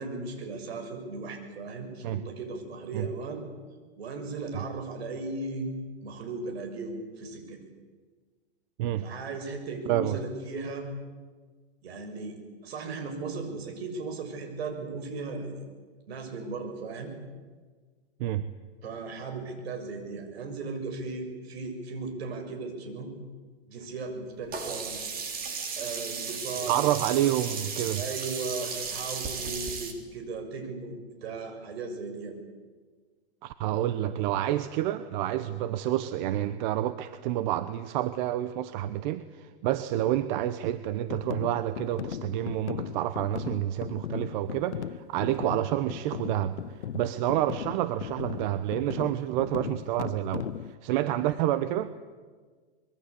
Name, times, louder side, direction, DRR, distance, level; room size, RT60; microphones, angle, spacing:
voice 1, 0.0-3.4 4.0-5.7 6.0-7.6 9.0-10.9 11.8-15.6 16.1-17.1 18.8-23.1 23.7-25.0 25.8-26.8 28.0-32.4 45.2-45.5 51.1-51.4, right 3 dB, 65° right, 5 dB, 6.9 m, -37 dB
voice 2, 9.9-10.2 18.2-18.5 26.7-28.0 33.4-51.9, right 13 dB, 45° right, 12 dB, 1.1 m, -29 dB
Sink (filling or washing), 24.5-29.9, right 5 dB, 25° right, 3.8 m, -35 dB
sound 1, 41.1-50.8, left 10 dB, 90° left, 0.9 m, -37 dB
25.0 x 22.5 x 8.4 m, 1.5 s
hypercardioid pair, 135°, 33 cm